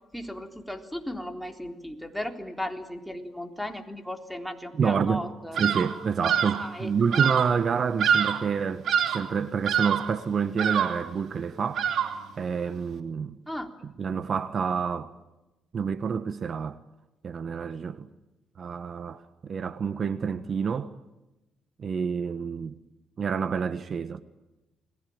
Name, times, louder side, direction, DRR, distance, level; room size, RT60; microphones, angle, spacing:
voice 1, 0.1-5.6 6.6-7.2 13.5-13.7, left 1 dB, ahead, 3.7 m, -36 dB
voice 2, 4.7-5.3 5.5-8.9 9.1-11.9 12.4-13.4 14.0-15.1 15.7-16.8 17.2-18.1 18.6-20.9 21.8-22.7 23.2-24.2, right 6 dB, 50° right, 1.3 m, -28 dB
Bird vocalization bird call bird song, 5.6-6.0 6.2-6.7 7.1-7.6 8.0-8.5 8.8-9.3 9.7-10.2 10.6-11.1 11.7-12.3, right 8 dB, 70° right, 2.9 m, -25 dB
29.5 x 21.5 x 8.8 m
cardioid pair, 90°, 0 cm